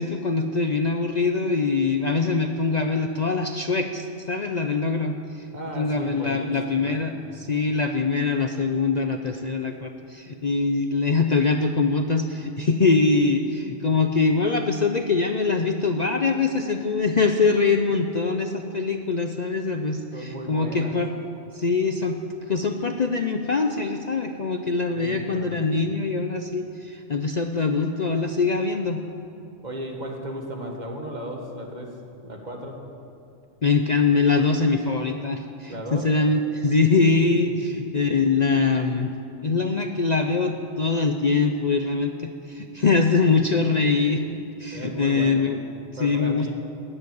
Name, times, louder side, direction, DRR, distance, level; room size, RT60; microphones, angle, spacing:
voice 1, 0.0-5.5 5.8-21.1 21.5-22.2 22.5-29.0 33.6-39.1 39.4-45.6 46.0-46.5, left 4 dB, 45° left, 5 dB, 0.7 m, -23 dB
voice 2, 5.5-7.0 12.0-12.1 20.1-21.0 24.9-25.6 29.6-32.8 35.7-36.1 37.5-37.7 44.7-45.5 46.0-46.5, right 1 dB, 40° right, 2 dB, 1.8 m, -35 dB
16.0 x 8.0 x 9.5 m, 2.8 s
omnidirectional pair, 1.2 m